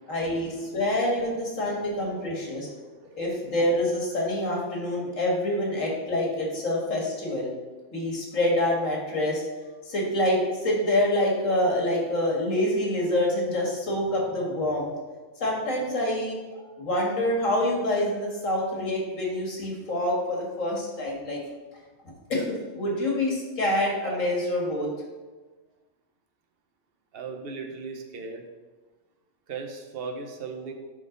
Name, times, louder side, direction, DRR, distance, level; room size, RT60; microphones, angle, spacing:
voice 1, 0.1-2.7 3.2-7.5 7.9-9.4 9.8-14.9 15.4-16.4 16.6-21.4 22.3-22.5 22.7-24.9, left 1 dB, 90° left, -2 dB, 2.2 m, -26 dB
voice 2, 27.1-28.4 29.5-30.7, right 4 dB, 50° right, 3 dB, 1.0 m, -37 dB
11.0 x 3.9 x 3.9 m, 1.3 s
omnidirectional pair, 1.3 m